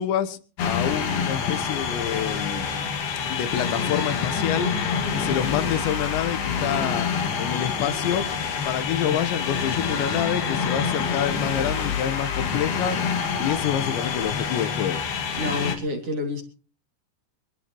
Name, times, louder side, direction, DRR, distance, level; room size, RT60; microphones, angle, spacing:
voice 1, 0.0-2.7 3.3-4.7 5.1-7.1 7.4-8.2 8.6-13.0 13.4-15.0, left 10 dB, 75° left, 3.3 m, -27 dB
sound 1, 0.6-15.8, left 6 dB, 55° left, 3.7 m, -27 dB
voice 2, 15.4-16.4, left 2 dB, 35° right, 2.8 m, -28 dB
24.5 x 14.0 x 3.1 m
omnidirectional pair, 5.5 m